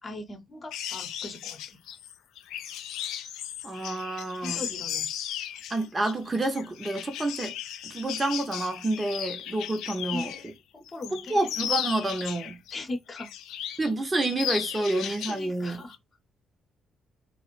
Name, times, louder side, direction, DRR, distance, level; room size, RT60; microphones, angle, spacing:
voice 1, 0.0-1.8 4.3-5.1 10.1-11.4 12.7-13.3 14.7-16.0, left 2 dB, 35° left, 0.8 m, -40 dB
sound 1, 0.7-10.5 10.9-12.8 13.2-13.9 14.2-15.4 15.7-16.0, left 10 dB, 65° left, 0.3 m, -36 dB
voice 2, 3.6-4.6 5.7-7.5 7.8-10.3 11.3-12.6 13.8-15.8, right 2 dB, 25° right, 0.6 m, -28 dB
2.3 x 2.0 x 3.0 m
figure-of-eight pair, 40°, 0 cm